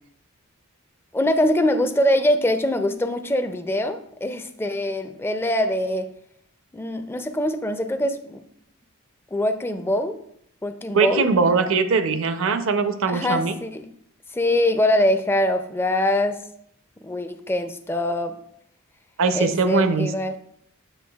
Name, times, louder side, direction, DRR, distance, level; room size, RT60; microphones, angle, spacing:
voice 1, 1.1-6.1 6.7-8.4 9.3-10.2 10.6-11.3 13.1-13.9 14.3-16.4 17.0-18.4 19.3-20.3, left 1 dB, 10° left, 8 dB, 0.4 m, -23 dB
voice 2, 10.9-13.5 19.2-20.1, right 4 dB, 65° right, 9 dB, 0.6 m, -21 dB
7.9 x 6.7 x 2.3 m, 0.73 s
head